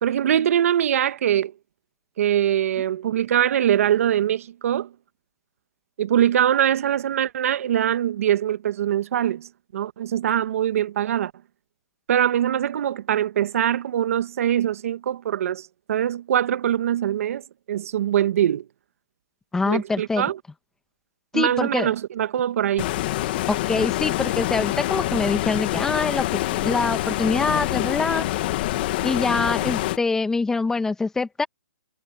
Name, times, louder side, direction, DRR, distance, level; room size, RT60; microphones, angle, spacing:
voice 1, 0.0-1.5 2.2-4.9 6.0-11.3 12.1-17.4 17.7-18.6 19.6-20.4 21.3-22.9, right 10 dB, 45° right, 1.2 m, -22 dB
voice 2, 19.5-20.2 21.3-21.9 23.5-28.3 29.0-31.5, left 3 dB, 5° left, 1.3 m, -24 dB
Stream, 22.8-30.0, left 17 dB, 30° left, 1.2 m, -26 dB
hypercardioid pair, 165°, 10 cm